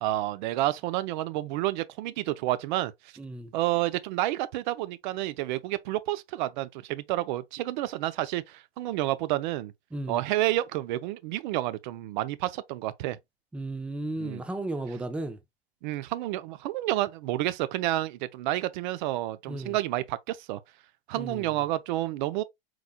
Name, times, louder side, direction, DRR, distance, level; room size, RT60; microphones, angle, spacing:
voice 1, 0.0-2.9 3.5-9.7 10.1-13.2 14.2-14.4 14.9-15.0 15.8-20.6 21.1-22.4, right 15 dB, 50° right, 0.6 m, -30 dB
voice 2, 3.2-3.5 9.9-10.2 13.5-15.4 19.5-19.7 21.2-21.5, right 2 dB, 5° right, 0.4 m, -34 dB
4.5 x 4.1 x 2.3 m
hypercardioid pair, 105°, 31 cm